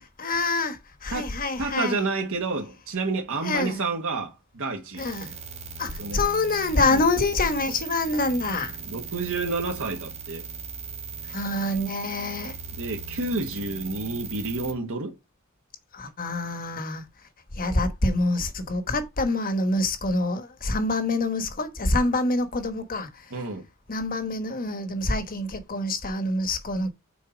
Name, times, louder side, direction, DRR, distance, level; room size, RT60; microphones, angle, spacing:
voice 1, 0.2-2.1 3.4-3.8 5.0-5.3 5.8-8.8 11.2-12.6 15.9-17.0 17.5-23.3 23.9-26.9, left 2 dB, 40° left, 1.1 m, -26 dB
voice 2, 1.6-5.1 6.0-6.2 6.8-7.0 8.9-10.4 12.8-15.2 23.3-23.6, right 3 dB, 65° right, 1.3 m, -29 dB
sound 1, 5.0-14.7, right 5 dB, 30° right, 1.4 m, -38 dB
6.4 x 4.3 x 5.0 m
head